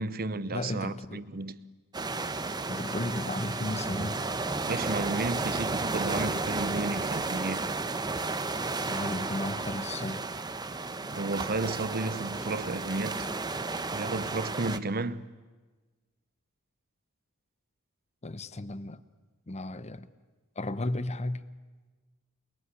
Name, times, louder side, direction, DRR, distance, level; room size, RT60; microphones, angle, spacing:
voice 1, 0.0-1.6 4.6-7.7 11.0-13.3 13.9-15.3, right 3 dB, 45° right, 0.9 m, -33 dB
voice 2, 0.5-1.2 2.7-4.3 8.8-10.3 18.2-19.0 19.5-20.1 20.6-21.5, left 2 dB, 30° left, 0.9 m, -34 dB
sound 1, 1.9-14.8, right 3 dB, 20° right, 1.0 m, -33 dB
28.5 x 21.0 x 9.9 m
head